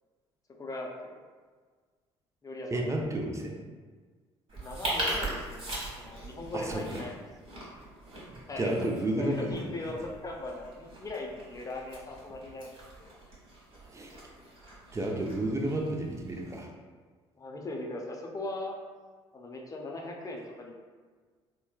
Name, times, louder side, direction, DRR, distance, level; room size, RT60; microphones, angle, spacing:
voice 1, 0.6-1.2 2.4-2.9 4.5-7.2 8.5-8.9 9.2-13.1 17.3-18.8 19.3-20.7, left 2 dB, 25° left, 0 dB, 0.6 m, -39 dB
voice 2, 2.7-3.6 6.5-6.8 8.6-9.9 13.9-14.2 14.9-16.7, right 1 dB, 20° right, 1 dB, 0.6 m, -31 dB
sound 1, 4.5-16.6, right 1 dB, 40° right, 1.3 m, -40 dB
4.2 x 2.2 x 2.2 m, 1.5 s
figure-of-eight pair, 50°, 14 cm